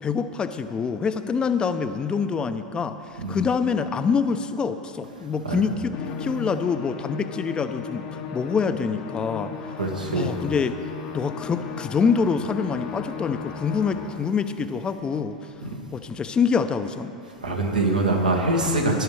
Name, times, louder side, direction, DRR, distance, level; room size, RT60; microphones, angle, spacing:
voice 1, 0.0-3.0 3.3-8.0 8.3-9.5 10.1-10.8 11.1-15.4 15.9-17.1, left 5 dB, 20° left, 10 dB, 0.6 m, -25 dB
Musical instrument, 5.9-14.4, left 6 dB, 50° left, 1.0 m, -36 dB
voice 2, 9.8-10.4 15.6-15.7 17.4-19.0, right 2 dB, 85° right, 0 dB, 1.7 m, -23 dB
18.5 x 11.0 x 3.3 m, 2.7 s
figure-of-eight pair, 90°, 4 cm